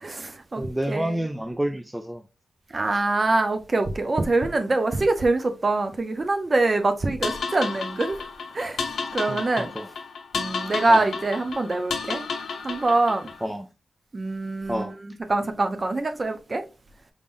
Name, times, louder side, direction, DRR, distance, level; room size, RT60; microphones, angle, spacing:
voice 1, 0.0-0.6 0.9-1.2 2.7-8.2 8.5-8.8 9.1-9.7 10.3-12.2 12.6-13.3 14.1-14.9 15.3-16.6, right 2 dB, 35° right, 0.7 m, -24 dB
voice 2, 0.6-2.2 9.3-9.9 10.9-11.1 13.4-13.7 14.7-14.9, right 1 dB, 10° right, 0.4 m, -29 dB
sound 1, 7.2-13.5, left 5 dB, 90° left, 0.7 m, -32 dB
4.9 x 3.6 x 2.5 m
wide cardioid pair, 110°, 0 cm